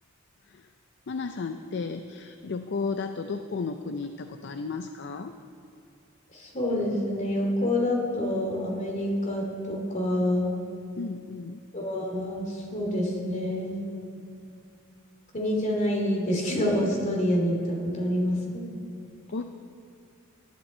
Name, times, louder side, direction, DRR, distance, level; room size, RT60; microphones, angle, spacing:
voice 1, 1.1-5.3 11.0-11.6 19.3-19.4, left 4 dB, 55° left, 8 dB, 0.5 m, -33 dB
voice 2, 6.3-10.6 11.7-13.7 15.3-18.7, left 1 dB, 35° left, -1 dB, 2.9 m, -27 dB
18.5 x 11.5 x 4.4 m, 2.4 s
head